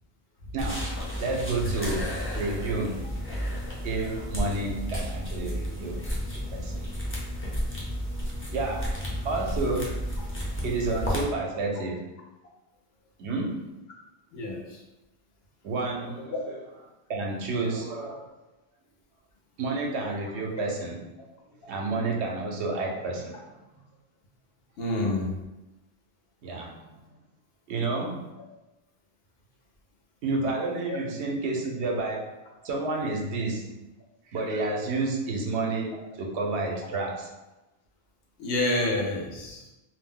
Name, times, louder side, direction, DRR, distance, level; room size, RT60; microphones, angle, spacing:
voice 1, 0.5-0.9 1.2-2.1 2.3-3.0 3.8-6.0 6.3-6.8 8.5-8.9 9.2-9.9 10.6-12.0 13.2-13.6 15.6-16.4 17.1-18.3 19.6-21.0 21.7-23.5 26.4-26.9 27.7-28.3 30.2-32.3 32.6-33.7 34.3-37.3, right 3 dB, 75° right, 0 dB, 0.9 m, -30 dB
sound 1, 0.6-11.2, equal, 15° left, 0.4 m, -32 dB
voice 2, 14.3-14.8 16.3-16.4 24.8-25.4 30.9-31.0 38.4-39.7, left 2 dB, 65° left, -1 dB, 0.8 m, -28 dB
2.6 x 2.1 x 3.6 m, 1.0 s
omnidirectional pair, 1.1 m